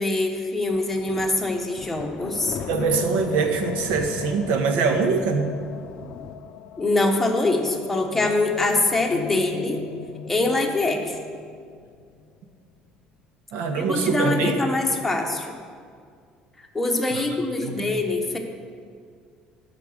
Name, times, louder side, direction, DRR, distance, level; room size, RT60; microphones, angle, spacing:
voice 1, 0.0-2.6 6.8-9.8 10.3-11.2 13.7-15.6 16.7-18.4, left 2 dB, 5° left, 1 dB, 1.0 m, -24 dB
sound 1, 0.7-6.4, left 6 dB, 35° left, 0.6 m, -39 dB
sound 2, 2.4-12.6, left 8 dB, 90° left, 0.5 m, -39 dB
voice 2, 2.7-5.5 13.5-14.6 17.1-17.2 17.6-17.9, right 4 dB, 80° right, 6 dB, 1.3 m, -23 dB
11.5 x 5.8 x 7.8 m, 2.1 s
cardioid pair, 165°, 3 cm